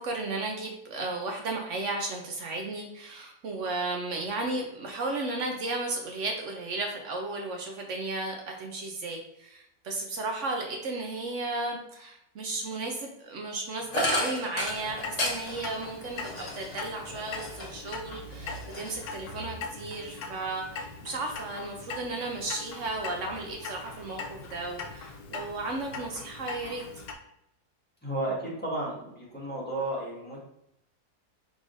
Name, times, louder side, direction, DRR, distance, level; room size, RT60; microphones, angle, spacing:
voice 1, 0.0-26.8, right 2 dB, 65° right, 2 dB, 0.9 m, -34 dB
sound 1, 13.9-17.9 18.3-19.4, left 1 dB, 35° left, 0.7 m, -33 dB
Clock, 14.6-27.1, left 4 dB, 75° left, 1.1 m, -41 dB
voice 2, 28.0-30.4, right 1 dB, 5° left, -7 dB, 1.4 m, -33 dB
4.8 x 3.8 x 2.5 m, 0.80 s
omnidirectional pair, 1.6 m